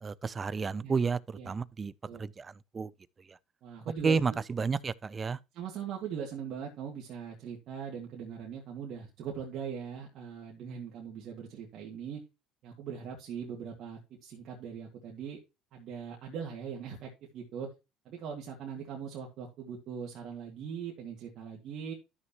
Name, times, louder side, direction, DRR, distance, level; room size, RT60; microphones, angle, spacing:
voice 1, 0.0-1.9 2.2-2.9 3.3-3.4 4.0-5.4, right 5 dB, 30° right, 0.5 m, -31 dB
voice 2, 3.6-4.4 5.5-12.2 12.6-15.4 15.7-17.7 18.0-21.9, right 7 dB, 60° right, 2.3 m, -40 dB
12.0 x 6.4 x 2.9 m
supercardioid pair, 100°, 0 cm